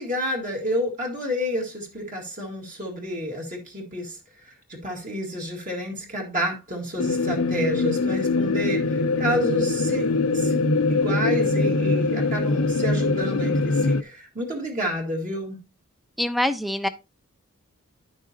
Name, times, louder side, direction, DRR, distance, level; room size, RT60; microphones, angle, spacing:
voice 1, 0.0-15.6, equal, 35° right, 1.8 m, -30 dB
sound 1, 7.0-14.0, left 3 dB, 75° left, 0.6 m, -23 dB
voice 2, 16.2-16.9, left 1 dB, ahead, 0.5 m, -24 dB
10.5 x 6.0 x 2.8 m
head